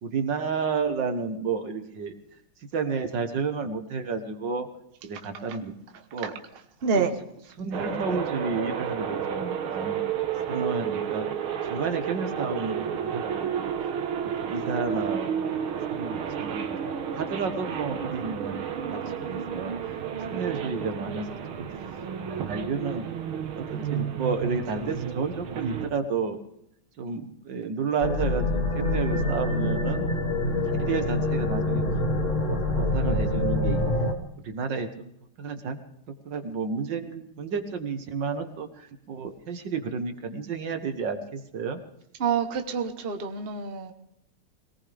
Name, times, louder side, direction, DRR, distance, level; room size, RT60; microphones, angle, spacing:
voice 1, 0.0-2.2 2.7-4.7 5.0-5.7 6.1-6.4 6.9-7.1 7.6-10.0 10.5-11.3 11.6-13.7 14.2-15.5 15.9-18.6 18.9-19.9 20.3-21.3 21.6-21.7 22.3-23.1 23.6-26.4 27.0-30.0 30.8-33.8 34.4-35.1 35.4-35.8 36.1-41.8, right 5 dB, 60° right, 7 dB, 1.9 m, -31 dB
sound 1, 7.7-25.9, right 8 dB, 80° right, 2.1 m, -31 dB
sound 2, 28.0-34.1, left 1 dB, 35° left, 2.1 m, -26 dB
voice 2, 42.2-43.9, right 6 dB, 35° right, 6 dB, 1.1 m, -27 dB
22.5 x 18.5 x 3.4 m, 0.76 s
omnidirectional pair, 2.3 m